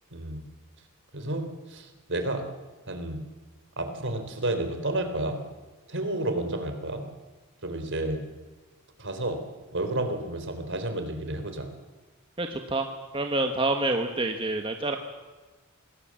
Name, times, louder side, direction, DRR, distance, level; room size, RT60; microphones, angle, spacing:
voice 1, 0.1-0.4 1.1-2.4 2.9-3.2 3.8-5.4 5.9-7.0 7.6-8.2 9.0-9.4 9.7-11.7, right 1 dB, 55° right, 7 dB, 3.6 m, -31 dB
voice 2, 12.4-12.9 13.1-15.0, right 2 dB, 25° right, 5 dB, 1.4 m, -27 dB
26.0 x 20.0 x 7.6 m, 1.3 s
head